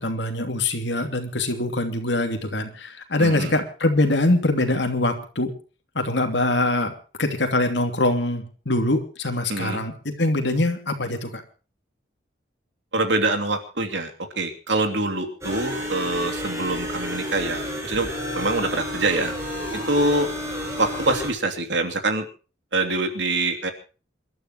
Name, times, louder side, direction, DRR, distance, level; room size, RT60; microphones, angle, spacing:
voice 1, 0.0-5.5 5.9-6.9 7.2-11.4, left 2 dB, 70° left, 5 dB, 2.9 m, -23 dB
voice 2, 3.2-3.5 9.5-9.8 12.9-18.1 18.3-19.3 19.9-20.3 20.8-22.3 22.7-23.7, right 2 dB, 75° right, 5 dB, 2.9 m, -24 dB
sound 1, 15.4-21.3, equal, 15° right, 6.7 m, -31 dB
27.5 x 12.5 x 3.0 m, 0.36 s
head